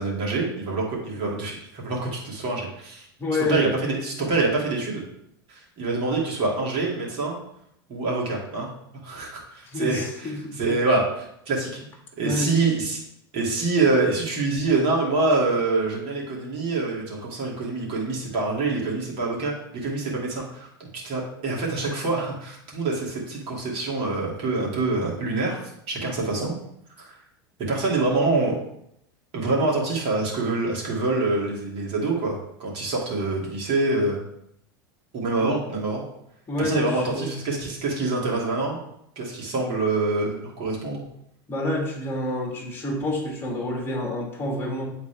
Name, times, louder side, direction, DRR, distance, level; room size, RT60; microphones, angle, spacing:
voice 1, 0.0-3.1 3.5-5.0 5.5-7.4 7.9-8.7 9.0-11.8 12.2-13.0 13.3-25.6 25.9-26.5 27.0-27.2 27.7-28.6 29.3-34.2 35.1-36.0 36.6-38.8 39.2-41.0, right 3 dB, 50° right, -3 dB, 2.4 m, -25 dB
voice 2, 3.2-3.7 9.7-10.6 12.2-12.5 35.4-35.5 36.5-37.3 41.5-44.9, left 1 dB, 20° left, 0 dB, 2.0 m, -28 dB
8.4 x 4.2 x 3.4 m, 0.76 s
hypercardioid pair, 100°, 13 cm